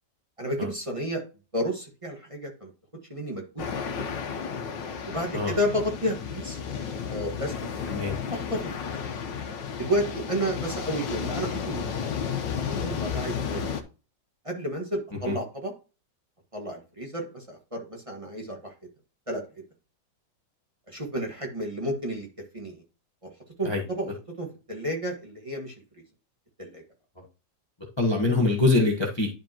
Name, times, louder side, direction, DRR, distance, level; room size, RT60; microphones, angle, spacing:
voice 1, 0.4-1.2 1.5-2.7 3.1-4.1 5.1-6.6 7.1-7.5 8.3-8.9 9.8-11.8 12.6-13.7 14.4-15.7 16.5-18.7 19.3-19.4 20.9-22.3 22.5-22.8 23.2-23.3 23.6-24.1 24.4-25.7 26.6-26.8, equal, 20° right, 1.6 m, -31 dB
sound 1, 3.6-13.8, left 7 dB, 90° left, 1.6 m, -33 dB
voice 2, 28.0-29.3, left 3 dB, 20° left, 1.1 m, -23 dB
11.0 x 5.2 x 2.9 m
omnidirectional pair, 1.9 m